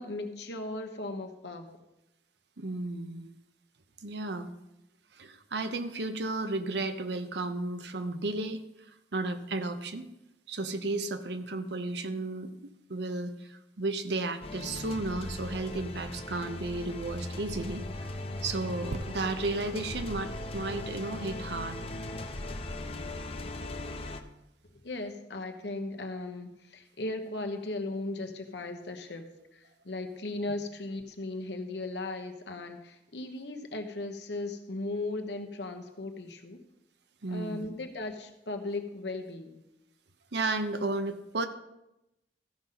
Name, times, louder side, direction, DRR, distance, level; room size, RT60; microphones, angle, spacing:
voice 1, 0.0-1.8 24.8-36.6 37.3-39.6, left 2 dB, 75° left, 5 dB, 1.2 m, -37 dB
voice 2, 2.6-3.3 4.0-4.5 5.1-8.6 8.9-10.0 10.5-18.1 18.4-21.8 37.2-37.7 40.3-41.5, right 2 dB, 75° right, 9 dB, 0.8 m, -33 dB
sound 1, 14.4-24.2, left 2 dB, 35° left, 0.7 m, -38 dB
sound 2, 18.9-22.5 23.1-23.2, right 2 dB, 35° right, 0.4 m, -45 dB
14.5 x 5.3 x 5.8 m, 0.91 s
head